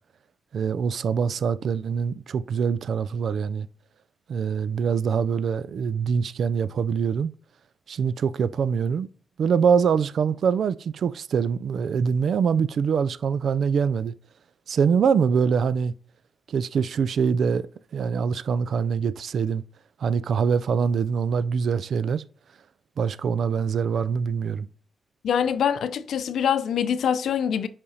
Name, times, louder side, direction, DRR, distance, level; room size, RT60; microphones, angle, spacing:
voice 1, 0.5-3.7 4.3-7.3 7.9-9.1 9.4-14.1 14.7-15.9 16.5-17.7 17.9-19.6 20.0-22.2 23.0-24.7, right 6 dB, 75° right, 0.3 m, -24 dB
voice 2, 25.2-27.7, left 8 dB, 85° left, 0.5 m, -24 dB
5.5 x 5.1 x 4.1 m
cardioid pair, 65°, 0 cm